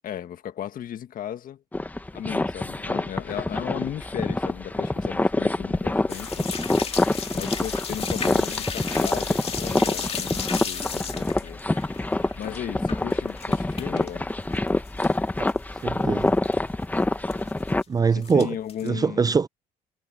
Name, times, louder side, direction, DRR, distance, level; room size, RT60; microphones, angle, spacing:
voice 1, 0.0-1.6 2.1-6.9 7.3-11.6 12.4-14.3 18.1-19.3, left 10 dB, 55° left, 1.8 m, -36 dB
sound 1, 1.7-17.8, left 2 dB, 10° left, 1.3 m, -26 dB
sound 2, 6.1-14.1 14.4-15.2 15.5-15.6 16.0-16.1 16.3-16.5 17.3-17.8 18.2-18.9, left 6 dB, 35° left, 2.4 m, -34 dB
voice 2, 15.8-16.3 17.9-18.5 18.8-19.5, right 5 dB, 20° right, 0.4 m, -22 dB
cardioid pair, 110°, 17 cm